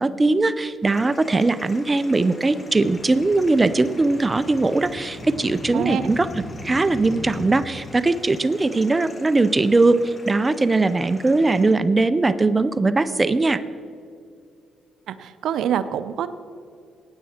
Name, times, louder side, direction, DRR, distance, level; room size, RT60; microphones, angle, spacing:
voice 1, 0.0-6.3 6.6-13.6, right 3 dB, 20° right, 13 dB, 0.5 m, -20 dB
sound 1, 0.8-11.7, left 2 dB, 30° left, 1.5 m, -39 dB
voice 2, 5.7-6.1 15.1-16.3, right 9 dB, 75° right, 13 dB, 0.6 m, -25 dB
16.0 x 9.3 x 4.4 m, 2.3 s
cardioid pair, 90°, 0 cm